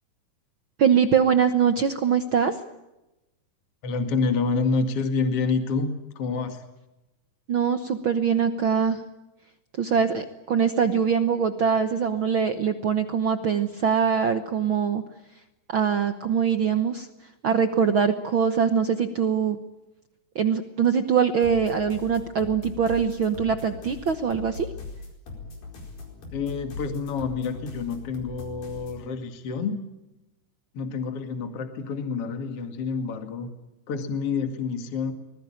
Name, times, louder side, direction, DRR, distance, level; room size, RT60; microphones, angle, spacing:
voice 1, 0.8-2.6 7.5-9.0 9.8-15.0 15.7-17.1 17.4-19.6 20.3-24.7, right 7 dB, 75° right, 8 dB, 1.1 m, -23 dB
voice 2, 3.8-6.6 26.3-29.8 30.7-33.5 33.9-35.1, left 4 dB, 45° left, 6 dB, 2.8 m, -28 dB
sound 1, 21.4-29.0, left 3 dB, 85° left, 6.3 m, -40 dB
25.5 x 20.5 x 8.9 m, 0.97 s
omnidirectional pair, 3.9 m